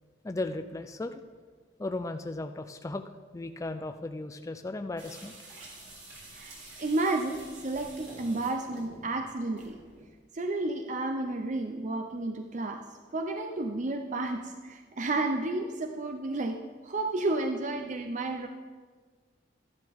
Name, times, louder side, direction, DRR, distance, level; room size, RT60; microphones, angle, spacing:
voice 1, 0.2-1.2 1.8-3.0 3.3-5.3, left 2 dB, 15° left, 7 dB, 0.4 m, -36 dB
sound 1, 5.0-10.0, right 2 dB, 85° right, 3.5 m, -49 dB
voice 2, 6.3-9.8 10.3-12.8 13.1-18.5, right 2 dB, 40° right, 5 dB, 0.5 m, -32 dB
12.5 x 10.5 x 3.5 m, 1.5 s
head